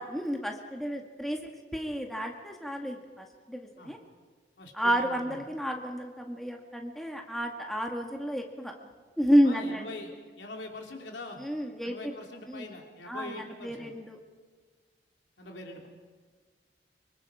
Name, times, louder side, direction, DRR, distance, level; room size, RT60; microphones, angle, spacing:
voice 1, 0.0-1.4 1.7-4.0 4.7-8.7 9.2-9.9 11.4-12.1 12.5-12.7 13.1-14.2, equal, ahead, 1 dB, 2.0 m, -30 dB
voice 2, 4.6-5.4 9.4-10.1 10.4-11.4 11.8-13.9 15.4-15.9, left 2 dB, 85° left, 1 dB, 3.0 m, -43 dB
25.5 x 24.5 x 5.0 m, 1.5 s
head